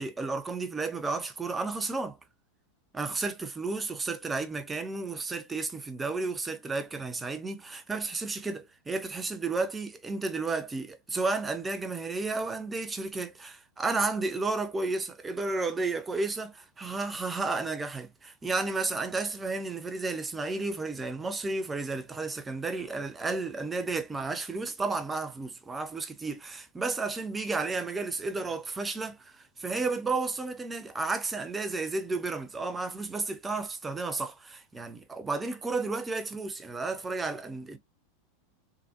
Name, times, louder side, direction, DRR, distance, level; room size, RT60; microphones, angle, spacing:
voice 1, 0.0-2.2 2.9-37.8, right 3 dB, 15° right, 0.6 m, -32 dB
3.4 x 2.2 x 2.8 m
hypercardioid pair, 90°, 0 cm